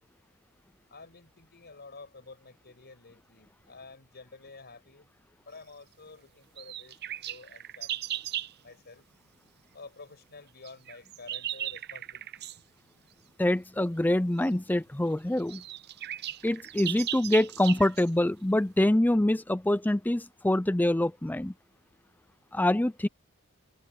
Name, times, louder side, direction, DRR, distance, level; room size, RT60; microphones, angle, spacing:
voice 1, 0.9-5.1 5.4-8.3 8.6-9.0 9.7-12.5, left 3 dB, 50° left, 5.8 m, -50 dB
sound 1, 6.6-8.5 10.6-12.6 14.4-14.5 15.1-15.2 15.4-18.1, right 11 dB, 50° right, 0.6 m, -37 dB
voice 2, 13.4-15.6 16.4-21.5 22.5-23.1, left 1 dB, 10° left, 0.5 m, -25 dB
head